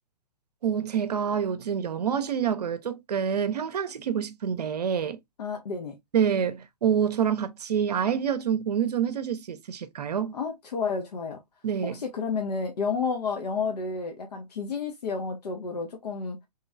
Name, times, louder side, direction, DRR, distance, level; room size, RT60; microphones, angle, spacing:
voice 1, 0.6-5.2 6.1-10.4 11.6-12.0, right 8 dB, 70° right, 0.6 m, -27 dB
voice 2, 5.4-6.0 10.3-11.4 11.8-16.4, left 5 dB, 70° left, 0.8 m, -31 dB
3.0 x 2.9 x 2.3 m
figure-of-eight pair, 120°, 21 cm